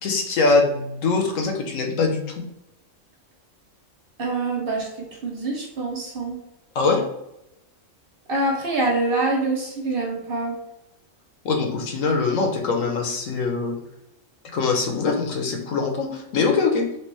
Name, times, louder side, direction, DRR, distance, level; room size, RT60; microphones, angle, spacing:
voice 1, 0.0-2.4 6.7-7.0 11.4-13.7 14.5-16.9, left 4 dB, 75° left, 3 dB, 1.1 m, -22 dB
voice 2, 4.2-6.4 8.3-10.6, right 2 dB, 55° right, -1 dB, 0.7 m, -25 dB
3.3 x 2.9 x 3.0 m, 0.86 s
omnidirectional pair, 1.4 m